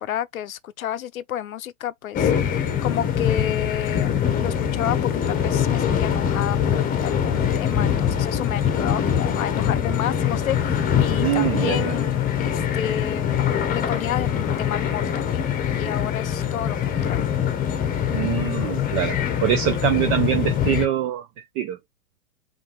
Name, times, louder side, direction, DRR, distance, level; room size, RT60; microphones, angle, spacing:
voice 1, 0.0-13.3 13.7-17.2, left 11 dB, 75° left, 0.7 m, -31 dB
sound 1, 2.1-20.9, left 8 dB, 20° left, 1.0 m, -23 dB
voice 2, 11.2-11.9 18.1-21.3 21.6-21.8, right 12 dB, 30° right, 0.6 m, -24 dB
5.3 x 2.8 x 3.1 m
hypercardioid pair, 115°, 42 cm